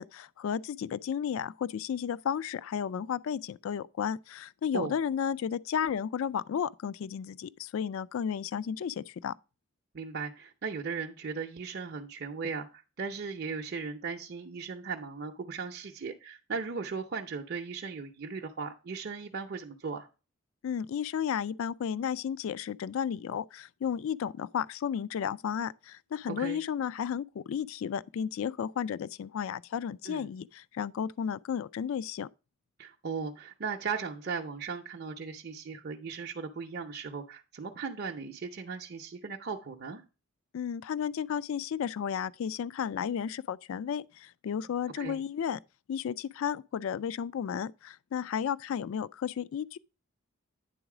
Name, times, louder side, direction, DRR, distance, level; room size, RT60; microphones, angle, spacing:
voice 1, 0.0-9.3 20.6-32.3 40.5-45.6 45.9-49.8, left 8 dB, 65° left, 0.3 m, -33 dB
voice 2, 9.9-20.1 26.4-26.6 30.0-30.3 32.8-40.0 45.0-45.2, right 5 dB, 45° right, 0.6 m, -37 dB
9.2 x 3.9 x 4.8 m
head